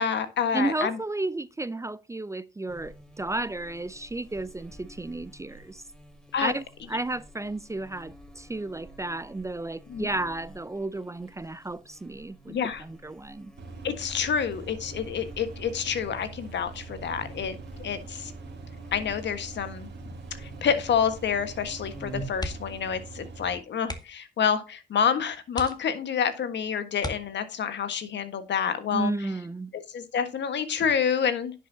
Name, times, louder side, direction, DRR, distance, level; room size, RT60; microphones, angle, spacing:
voice 1, 0.0-1.0 6.3-6.5 9.9-10.1 12.5-12.8 13.8-18.3 18.9-19.9 20.4-29.1 29.7-31.5, left 7 dB, 70° left, 1.5 m, -28 dB
voice 2, 0.5-5.8 6.4-13.5 28.9-29.7, right 2 dB, 15° right, 0.5 m, -33 dB
Buzz, 2.7-22.5, right 1 dB, 5° left, 2.7 m, -48 dB
sound 1, 13.6-23.6, right 4 dB, 65° right, 1.9 m, -43 dB
sound 2, 22.3-22.9 23.2-23.3 23.8-24.3 24.9-25.0 25.5-26.3 27.0-27.7 29.3-29.6 30.0-30.1, left 1 dB, 20° left, 2.0 m, -37 dB
10.5 x 7.6 x 2.8 m
supercardioid pair, 60°, 19 cm